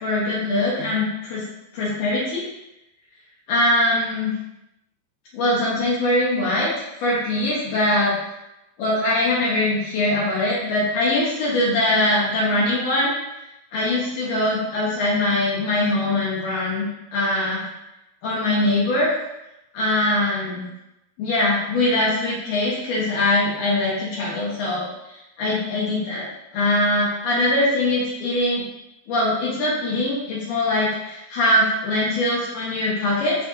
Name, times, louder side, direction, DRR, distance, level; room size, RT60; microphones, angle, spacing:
voice 1, 0.0-1.4 1.7-2.5 3.5-4.3 5.3-6.7 7.0-8.2 8.8-13.1 13.7-16.9 17.1-17.6 18.2-19.1 19.7-20.6 21.2-24.9 25.4-26.3 26.5-28.6 29.1-33.4, left 1 dB, 85° left, -6 dB, 2.8 m, -22 dB
6.2 x 2.5 x 2.6 m, 0.91 s
omnidirectional pair, 3.6 m